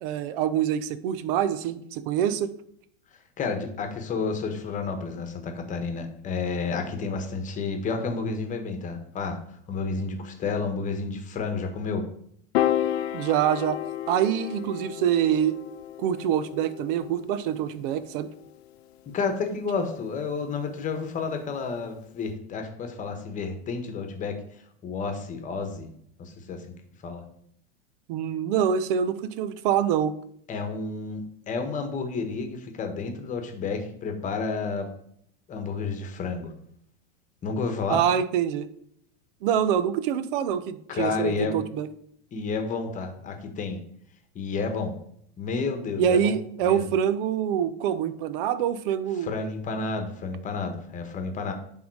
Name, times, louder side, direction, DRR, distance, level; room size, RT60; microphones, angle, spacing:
voice 1, 0.0-2.5 13.1-13.8 14.1-15.6 16.0-18.3 28.1-30.1 37.9-38.7 39.4-41.9 46.0-49.3, right 9 dB, 55° right, 14 dB, 0.8 m, -25 dB
voice 2, 3.4-9.4 9.7-12.1 19.1-24.3 24.8-25.9 26.2-26.6 27.0-27.2 30.5-34.9 35.5-36.5 37.4-38.0 40.9-41.6 42.3-43.8 44.3-45.0 45.4-46.4 46.6-46.9 49.2-51.5, left 4 dB, 25° left, 5 dB, 1.2 m, -30 dB
Piano, 12.5-18.9, left 12 dB, 70° left, 0.7 m, -32 dB
10.5 x 3.7 x 4.8 m, 0.68 s
supercardioid pair, 130°, 32 cm